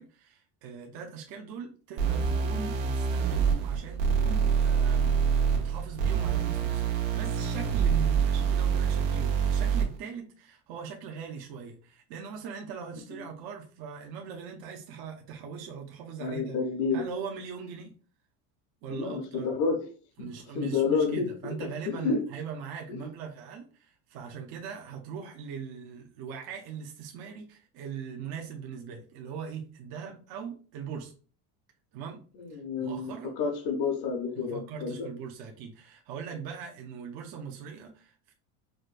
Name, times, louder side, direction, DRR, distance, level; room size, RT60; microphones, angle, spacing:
voice 1, 0.0-5.2 5.5-16.6 16.9-17.9 18.8-19.5 20.2-31.1 31.9-32.2 32.5-33.4 34.4-38.3, right 6 dB, 55° right, 0.7 m, -41 dB
sound 1, 2.0-10.0, right 6 dB, 75° right, 1.1 m, -26 dB
voice 2, 16.2-17.1 18.9-19.8 20.5-21.5 21.9-22.2 22.9-23.1 32.4-35.1, left 5 dB, 45° left, 0.7 m, -29 dB
4.9 x 2.2 x 2.4 m
cardioid pair, 165°, 44 cm